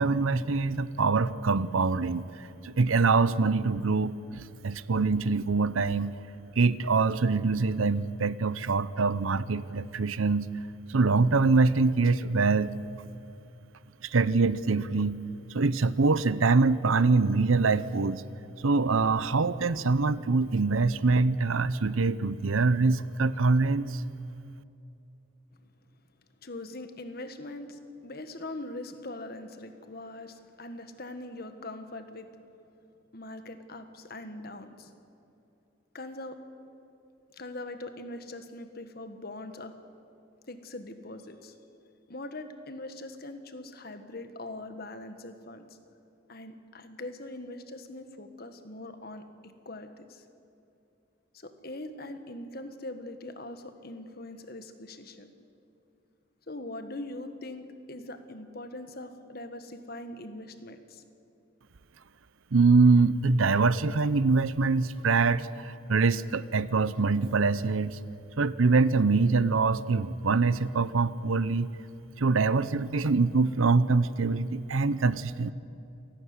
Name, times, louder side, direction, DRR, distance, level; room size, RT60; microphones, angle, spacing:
voice 1, 0.0-2.2 2.6-6.1 6.6-10.5 10.9-12.7 14.0-15.2 15.5-18.2 18.6-24.0 62.5-68.0 68.4-71.7 72.2-75.5, right 4 dB, 90° right, 17 dB, 0.7 m, -24 dB
voice 2, 26.4-32.3 33.1-34.9 35.9-36.4 37.3-39.7 40.5-41.5 42.1-45.8 46.3-50.2 51.3-55.3 56.5-61.0, left 2 dB, 50° left, 8 dB, 1.6 m, -42 dB
28.5 x 12.0 x 9.6 m, 2.7 s
head